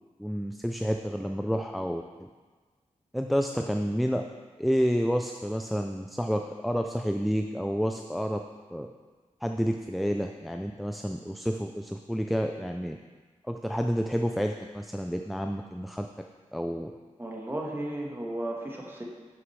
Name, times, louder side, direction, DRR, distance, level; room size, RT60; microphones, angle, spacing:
voice 1, 0.2-2.3 3.1-4.2 4.6-8.4 8.7-8.9 9.4-13.0 13.5-16.1 16.5-16.9, equal, ahead, 4 dB, 0.3 m, -29 dB
voice 2, 17.2-19.0, right 1 dB, 15° right, -2 dB, 1.3 m, -34 dB
11.0 x 6.1 x 3.2 m, 1.4 s
wide cardioid pair, 120°, 13 cm